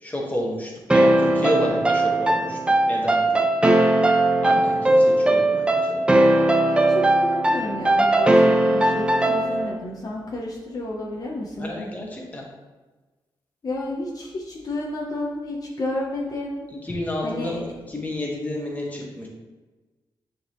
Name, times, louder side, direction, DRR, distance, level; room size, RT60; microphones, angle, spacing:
voice 1, 0.0-2.6 2.8-3.5 4.4-6.1 11.6-12.4 16.8-19.3, left 1 dB, 20° left, -2 dB, 1.4 m, -30 dB
sound 1, 0.9-9.8, right 1 dB, 10° right, 0.5 m, -19 dB
voice 2, 6.8-11.7 13.6-16.7 17.2-17.6, left 2 dB, 45° left, -3 dB, 0.9 m, -31 dB
9.3 x 3.9 x 3.1 m, 1.2 s
wide cardioid pair, 125°, 9 cm